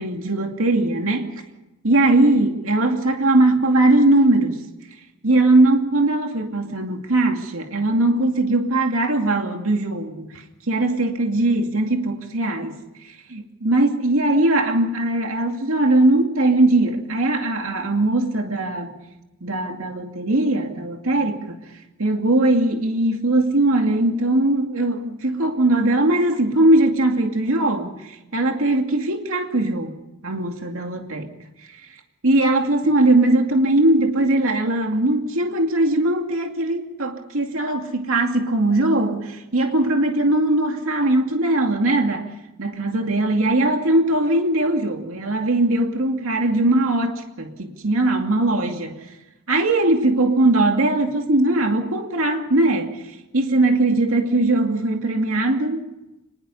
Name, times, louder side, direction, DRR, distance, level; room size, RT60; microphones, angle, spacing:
voice 1, 0.0-1.4 1.8-4.6 5.2-12.8 13.3-19.0 19.4-21.6 22.0-29.9 30.2-31.3 32.2-42.3 42.6-49.0 49.5-53.0 53.3-55.9, right 2 dB, 75° right, 3 dB, 2.5 m, -20 dB
25.5 x 21.0 x 5.6 m, 0.99 s
head